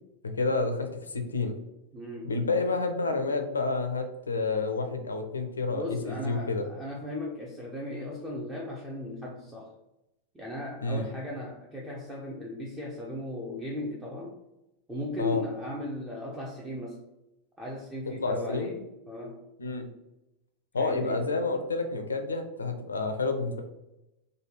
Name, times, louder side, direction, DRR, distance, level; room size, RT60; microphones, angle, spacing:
voice 1, 0.2-1.6 2.2-6.7 10.8-11.0 15.2-15.4 18.2-18.7 19.6-19.9 20.7-23.6, left 3 dB, 75° left, 6 dB, 0.4 m, -29 dB
voice 2, 1.9-2.3 5.7-9.7 10.3-14.4 14.9-17.0 17.6-19.5 20.7-21.2, left 2 dB, 10° right, -3 dB, 0.5 m, -37 dB
3.2 x 2.2 x 3.1 m, 0.93 s
figure-of-eight pair, 90°, 0 cm